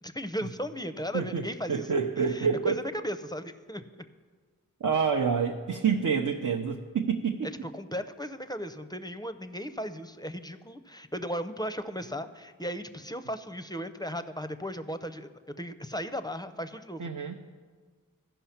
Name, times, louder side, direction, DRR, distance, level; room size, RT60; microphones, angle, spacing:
voice 1, 0.0-1.9 2.3-3.8 7.4-15.3 15.6-17.1, equal, 10° left, 9 dB, 0.5 m, -36 dB
voice 2, 1.1-2.8 4.8-7.5 17.0-17.4, right 6 dB, 65° right, 2 dB, 0.7 m, -28 dB
14.5 x 5.6 x 5.8 m, 1.5 s
wide cardioid pair, 45°, 34 cm